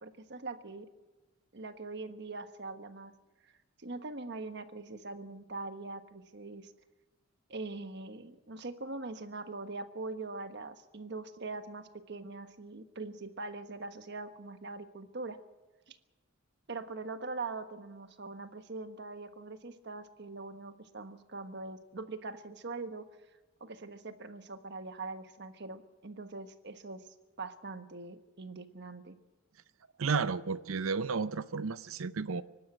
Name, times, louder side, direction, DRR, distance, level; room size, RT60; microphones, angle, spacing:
voice 1, 0.0-0.9 1.5-3.1 3.4-3.5 3.8-6.7 7.5-15.4 15.9-16.0 16.7-23.1 23.6-27.1 27.4-29.2, right 3 dB, 55° right, 1.3 m, -42 dB
voice 2, 30.0-32.4, right 4 dB, 80° right, 0.6 m, -32 dB
24.0 x 12.5 x 8.9 m
head